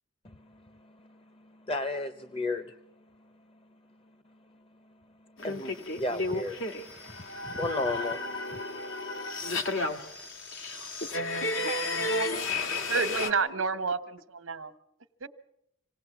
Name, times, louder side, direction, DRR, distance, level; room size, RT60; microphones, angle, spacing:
voice 1, 0.2-2.8 3.2-3.3 4.3-4.6 5.4-6.6 7.4-8.2 8.5-8.6, left 2 dB, 30° left, 9 dB, 0.8 m, -35 dB
sound 1, 5.4-13.3, left 2 dB, 85° left, 1.9 m, -32 dB
voice 2, 11.3-13.6, left 2 dB, 60° left, 9 dB, 2.8 m, -42 dB
voice 3, 12.9-14.7 15.2-15.3, right 5 dB, 90° right, 12 dB, 1.2 m, -30 dB
26.5 x 18.0 x 7.3 m, 0.80 s
head